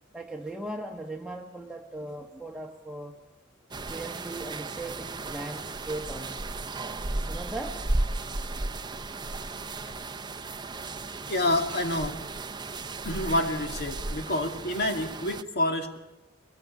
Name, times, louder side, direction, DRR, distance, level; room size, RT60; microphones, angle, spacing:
voice 1, 0.1-3.2 3.9-6.6 7.3-7.8, right 1 dB, 5° right, 0 dB, 1.2 m, -38 dB
sound 1, 3.7-15.4, right 2 dB, 20° right, 0.8 m, -35 dB
voice 2, 11.3-12.2 13.0-16.0, left 1 dB, 55° left, 5 dB, 2.6 m, -28 dB
22.5 x 22.0 x 8.4 m, 0.98 s
head